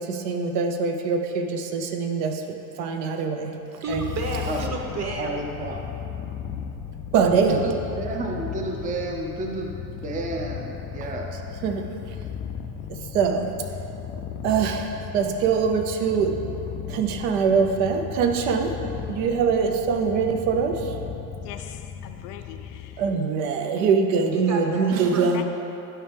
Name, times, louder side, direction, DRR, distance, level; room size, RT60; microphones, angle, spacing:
voice 1, 0.0-4.0 7.1-7.7 11.6-12.2 12.9-13.7 14.4-16.4 16.9-18.7 19.1-20.9 23.0-25.4, right 5 dB, 70° right, 0.8 m, -23 dB
voice 2, 3.8-5.3 24.3-25.4, right 3 dB, 30° right, 1.1 m, -31 dB
Purr, 3.9-23.2, left 8 dB, 25° left, 0.3 m, -36 dB
voice 3, 5.2-5.8 7.5-11.4, right 2 dB, 15° right, 0.6 m, -31 dB
voice 4, 21.4-23.0 25.3-25.4, left 10 dB, 70° left, 0.6 m, -41 dB
10.0 x 4.5 x 3.4 m
supercardioid pair, 95°, 48 cm